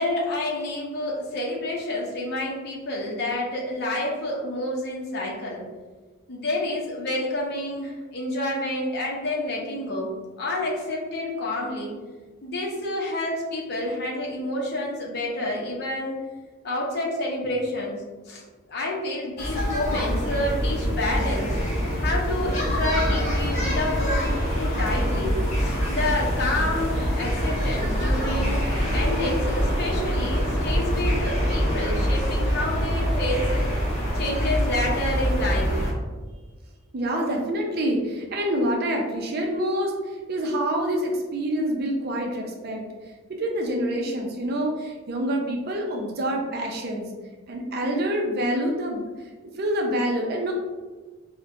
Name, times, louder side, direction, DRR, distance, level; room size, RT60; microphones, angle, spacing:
voice 1, 0.0-5.6 6.3-11.9 12.4-16.2 16.6-18.4 18.7-21.5 22.0-28.6 28.9-33.6 34.1-35.8, left 1 dB, 50° left, -2 dB, 0.6 m, -29 dB
sound 1, 19.4-35.9, equal, 35° left, 1.2 m, -25 dB
sound 2, 20.0-32.0, left 1 dB, ahead, 1.2 m, -34 dB
voice 2, 36.9-42.9 43.4-47.1 47.5-49.0 49.6-50.5, right 1 dB, 50° right, 1 dB, 0.5 m, -26 dB
4.2 x 2.1 x 2.6 m, 1.3 s
head